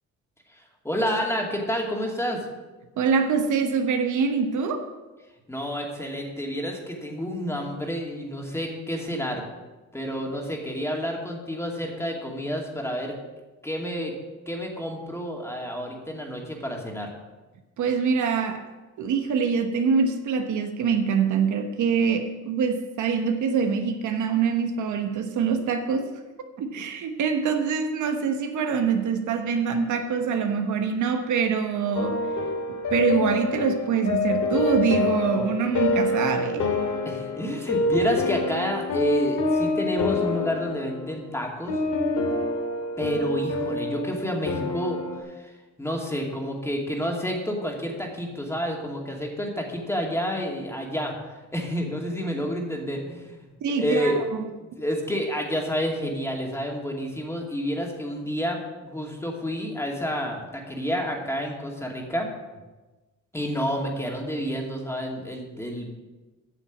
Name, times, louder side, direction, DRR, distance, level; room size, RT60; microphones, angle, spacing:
voice 1, 0.5-2.5 5.5-9.4 9.9-13.2 13.6-14.1 14.5-17.1 37.0-41.8 43.0-45.5 45.8-53.5 53.8-54.2 54.8-62.3 63.3-66.0, equal, 10° left, 0 dB, 2.4 m, -29 dB
voice 2, 3.0-4.9 17.8-18.7 19.0-26.1 26.6-32.2 32.9-36.7 53.6-54.2, right 6 dB, 75° right, 6 dB, 1.1 m, -24 dB
sound 1, 31.9-45.2, left 3 dB, 70° left, 2.2 m, -27 dB
9.1 x 7.0 x 7.3 m, 1.2 s
cardioid pair, 90°, 30 cm